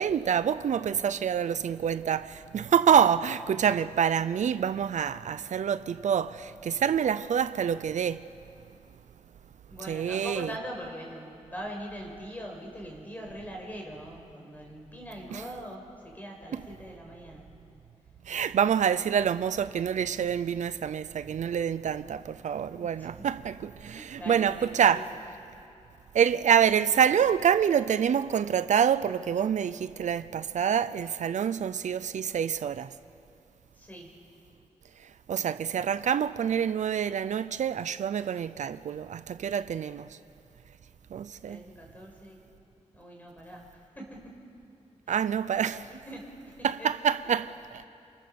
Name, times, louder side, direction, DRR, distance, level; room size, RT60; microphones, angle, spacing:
voice 1, 0.0-8.2 9.9-10.5 15.3-15.4 18.3-25.1 26.1-32.9 35.3-40.2 41.1-41.6 45.1-45.9 46.6-47.8, right 8 dB, 80° right, 0.6 m, -26 dB
voice 2, 9.7-17.5 22.8-23.3 23.9-25.0 33.8-34.2 41.4-42.4 42.9-44.4 45.1-45.2 46.1-46.9, equal, 15° left, 5.3 m, -42 dB
30.0 x 28.0 x 7.0 m
wide cardioid pair, 175°, 12 cm